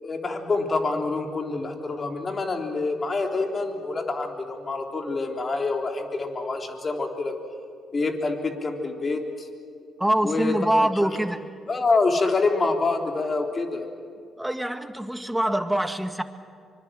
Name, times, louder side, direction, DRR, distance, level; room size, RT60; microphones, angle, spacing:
voice 1, 0.0-7.3 7.9-9.5 10.2-11.1 11.7-13.9, left 3 dB, 40° left, 3 dB, 3.6 m, -26 dB
voice 2, 10.0-11.4 14.4-16.2, right 1 dB, 5° right, 9 dB, 1.8 m, -24 dB
24.5 x 24.0 x 7.6 m, 2.3 s
hypercardioid pair, 45°, 0 cm